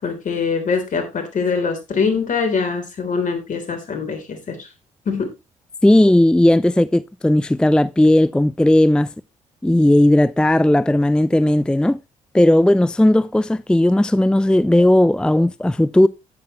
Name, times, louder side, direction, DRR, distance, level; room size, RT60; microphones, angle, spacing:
voice 1, 0.0-4.7 5.0-5.3, left 5 dB, 55° left, 3.4 m, -23 dB
voice 2, 5.8-9.1 9.6-12.0 12.3-16.1, left 1 dB, 5° left, 0.4 m, -15 dB
10.5 x 9.4 x 3.0 m
hypercardioid pair, 45°, 16 cm